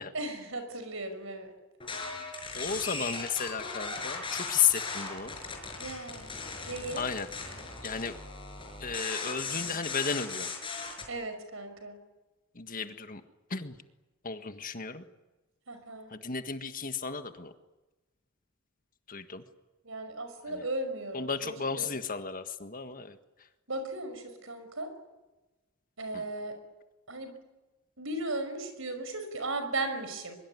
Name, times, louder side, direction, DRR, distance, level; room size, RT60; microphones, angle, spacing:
voice 1, 0.1-1.6 5.8-6.3 6.7-7.0 11.1-12.0 15.7-16.1 19.8-21.9 23.7-24.9 26.0-26.6 27.1-27.3 28.0-30.4, right 2 dB, 65° right, 8 dB, 5.8 m, -36 dB
sound 1, 1.8-11.1, left 4 dB, 25° left, 6.0 m, -38 dB
voice 2, 2.5-5.3 7.0-7.3 7.8-8.1 8.8-10.5 12.6-13.2 13.5-13.7 14.2-15.0 16.1-17.5 19.1-19.4 20.5-20.6 21.1-23.1 26.1-26.2, left 6 dB, 40° left, 9 dB, 1.6 m, -33 dB
23.5 x 23.0 x 9.6 m, 1.1 s
head